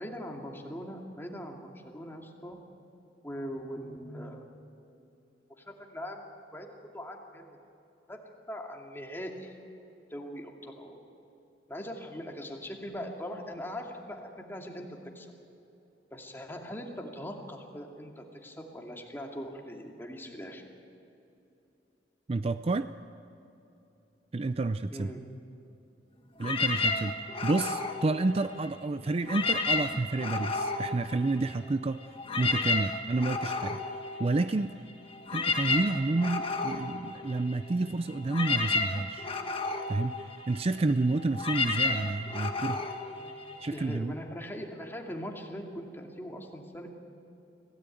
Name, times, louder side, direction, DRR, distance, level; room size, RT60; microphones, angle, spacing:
voice 1, 0.0-2.6 3.2-4.5 5.5-6.2 6.5-7.6 8.1-8.2 8.5-9.6 10.1-11.0 11.7-15.3 16.1-20.6 24.9-25.2 43.1-43.4 43.7-46.9, equal, 15° left, 1 dB, 2.5 m, -41 dB
voice 2, 22.3-22.9 24.3-25.1 26.4-27.1 27.4-32.0 32.4-33.8 34.2-34.7 35.3-39.3 39.9-40.2 40.5-42.8 43.6-44.1, right 2 dB, 35° right, 11 dB, 0.4 m, -29 dB
sound 1, 26.4-28.8 29.2-31.7 32.0-44.0, left 3 dB, 30° left, 1.5 m, -32 dB
25.5 x 17.0 x 9.2 m, 2.8 s
head